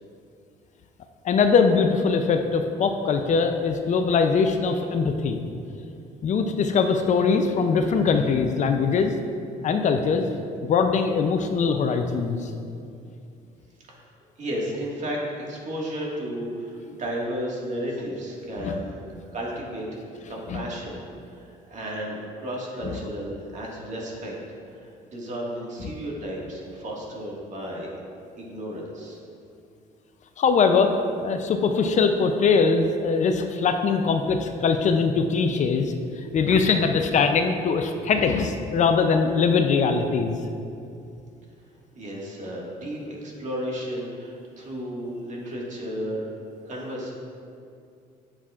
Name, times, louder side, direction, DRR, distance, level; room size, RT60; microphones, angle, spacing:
voice 1, 1.2-5.4 6.2-9.1 9.6-10.3 10.6-12.5 18.6-18.8 20.5-20.6 22.8-22.9 30.4-40.4, left 5 dB, 45° left, 6 dB, 0.5 m, -22 dB
voice 2, 14.4-18.9 19.3-19.9 20.3-24.3 24.7-27.9 28.4-29.2 42.0-46.2 46.7-47.1, equal, 45° right, -3 dB, 1.8 m, -33 dB
8.8 x 7.2 x 2.4 m, 2.5 s
cardioid pair, 110°, 17 cm